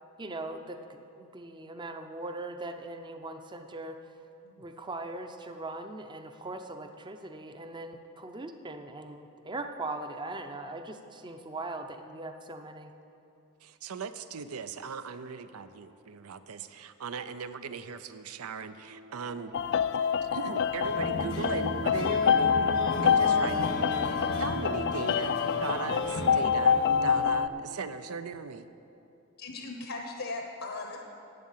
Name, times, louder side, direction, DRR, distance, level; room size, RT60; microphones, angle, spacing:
voice 1, 0.2-4.1 4.6-12.9, right 2 dB, 20° right, 7 dB, 0.6 m, -40 dB
voice 2, 13.6-19.5 20.2-22.6 23.0-23.6 24.4-28.7, right 5 dB, 90° right, 12 dB, 0.6 m, -38 dB
sound 1, 18.9-28.6, right 4 dB, 45° right, 0.9 m, -47 dB
sound 2, 19.5-27.5, left 7 dB, 50° left, 0.3 m, -26 dB
sound 3, 20.8-27.2, left 2 dB, 85° left, 1.3 m, -35 dB
voice 3, 29.4-31.0, left 3 dB, 70° left, 2 dB, 1.0 m, -38 dB
11.0 x 8.6 x 7.3 m, 2.8 s
head